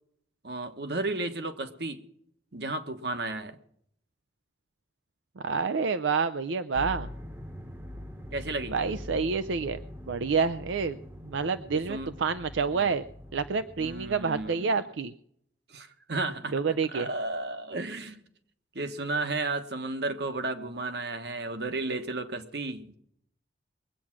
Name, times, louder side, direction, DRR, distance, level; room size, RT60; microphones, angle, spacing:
voice 1, 0.4-2.0 2.5-3.6 8.3-8.8 11.7-12.1 12.7-12.9 13.8-14.8 15.7-18.2 18.7-22.9, right 2 dB, 65° right, 8 dB, 1.3 m, -33 dB
voice 2, 5.4-7.1 8.7-9.8 10.1-11.0 11.2-13.0 13.3-15.1 16.5-17.1, right 5 dB, 85° right, 12 dB, 0.5 m, -28 dB
sound 1, 6.7-14.5, left 1 dB, 10° right, 0.9 m, -43 dB
21.5 x 8.7 x 6.0 m, 0.69 s
head